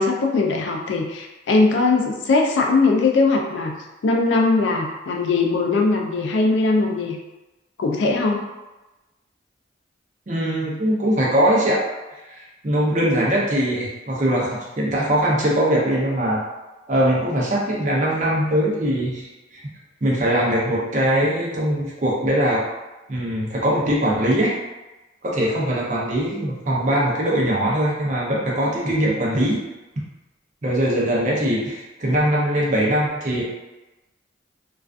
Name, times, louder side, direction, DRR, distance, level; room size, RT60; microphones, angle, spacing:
voice 1, 0.0-3.8 4.0-7.2 7.8-8.4, left 3 dB, 80° left, 1 dB, 0.4 m, -20 dB
voice 2, 10.3-11.8 12.3-16.4 16.9-19.6 20.0-22.6 23.1-24.6 25.2-29.6 30.6-33.4, right 1 dB, 40° right, -5 dB, 0.6 m, -21 dB
2.3 x 2.3 x 2.4 m, 1.1 s
head